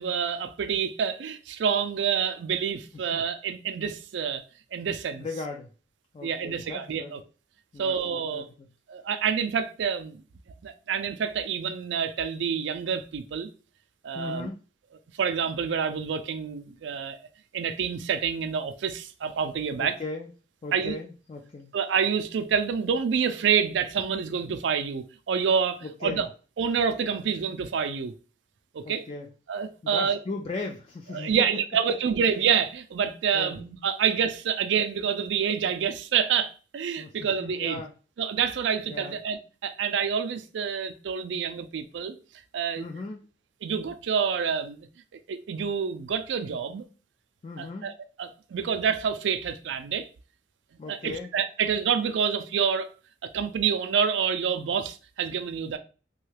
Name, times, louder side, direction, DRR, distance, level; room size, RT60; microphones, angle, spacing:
voice 1, 0.0-4.4 4.7-5.3 6.2-7.2 7.8-8.5 8.9-10.2 10.6-13.5 14.0-14.5 15.2-17.2 17.5-20.0 20.7-21.0 21.7-26.3 26.6-28.1 28.7-29.0 29.5-30.2 31.1-37.8 38.2-42.2 42.5-42.9 43.6-44.9 45.1-46.8 47.6-47.9 48.2-50.1 50.9-52.9 53.3-55.8, right 7 dB, 80° right, 0.4 m, -27 dB
voice 2, 5.2-5.7 6.1-7.2 7.7-8.7 14.1-14.6 19.8-20.3 20.6-21.7 25.8-26.3 28.8-29.3 29.8-31.5 33.3-33.6 37.0-37.9 38.9-39.2 42.8-43.2 47.4-47.9 50.8-51.3, left 3 dB, 35° left, 0.3 m, -37 dB
3.1 x 2.3 x 3.2 m
head